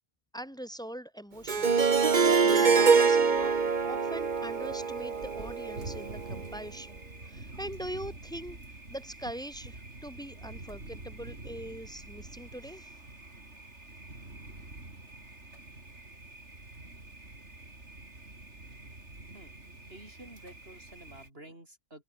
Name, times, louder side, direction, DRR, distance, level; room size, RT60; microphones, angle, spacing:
voice 1, 0.3-3.5 3.8-12.9, equal, 5° left, 5.3 m, -42 dB
Harp, 1.5-6.4, right 5 dB, 45° right, 1.3 m, -25 dB
Thunder, 3.4-21.3, right 2 dB, 90° right, 4.9 m, -47 dB
voice 2, 19.9-22.0, right 1 dB, 60° right, 7.4 m, -50 dB
open air
omnidirectional pair, 1.1 m